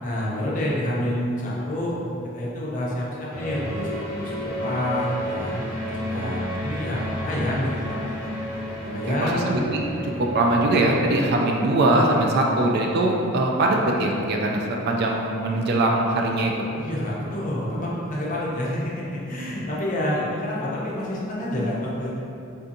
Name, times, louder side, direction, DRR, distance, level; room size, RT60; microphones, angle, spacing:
voice 1, 0.0-1.9 2.3-4.3 4.6-5.5 5.9-8.0 8.8-9.5 16.7-22.1, left 1 dB, 40° left, -5 dB, 0.5 m, -28 dB
sound 1, 3.3-14.7, equal, 5° left, 0.7 m, -33 dB
voice 2, 9.1-9.8 10.2-16.5 19.5-19.6, right 2 dB, 50° right, 0 dB, 0.3 m, -22 dB
3.5 x 2.6 x 2.5 m, 2.7 s
head